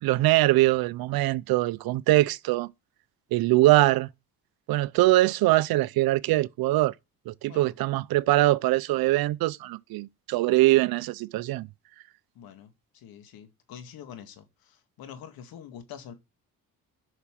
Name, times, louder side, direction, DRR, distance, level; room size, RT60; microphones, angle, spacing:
voice 1, 0.0-2.7 3.3-4.1 4.7-6.9 7.3-11.7, right 17 dB, 85° right, 0.6 m, -22 dB
voice 2, 12.4-16.1, left 8 dB, 85° left, 2.0 m, -45 dB
8.2 x 6.0 x 7.5 m
cardioid pair, 100°, 35 cm